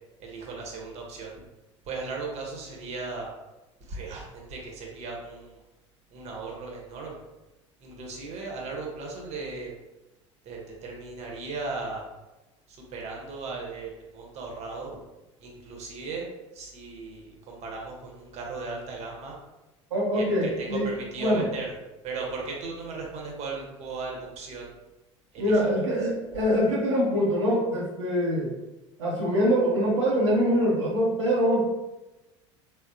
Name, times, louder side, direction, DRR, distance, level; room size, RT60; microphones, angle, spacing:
voice 1, 0.2-1.4 1.8-3.3 3.8-5.6 6.1-7.2 7.8-9.7 10.4-12.1 12.7-14.9 15.4-16.3 16.5-19.4 20.1-21.7 22.0-24.8 25.3-25.4, right 4 dB, 45° right, -1 dB, 0.8 m, -37 dB
voice 2, 19.9-20.9 21.2-21.5 25.4-28.5 29.0-31.7, equal, 80° right, -5 dB, 0.6 m, -24 dB
3.5 x 2.0 x 2.6 m, 1.0 s
figure-of-eight pair, 70°, 16 cm